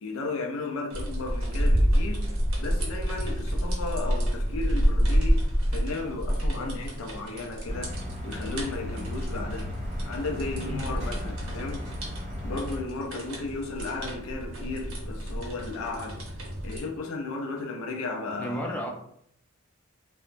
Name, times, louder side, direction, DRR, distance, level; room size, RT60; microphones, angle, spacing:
voice 1, 0.0-2.3 2.6-5.5 5.7-8.0 8.2-9.7 10.1-11.9 12.4-16.2 16.6-18.8, left 3 dB, 80° left, 0.4 m, -34 dB
sound 1, 0.9-16.8, equal, 80° right, 0.7 m, -29 dB
sound 2, 7.7-12.8, left 1 dB, 60° right, 1.1 m, -35 dB
voice 2, 18.4-18.9, equal, 5° left, 0.4 m, -33 dB
2.9 x 2.1 x 2.5 m
head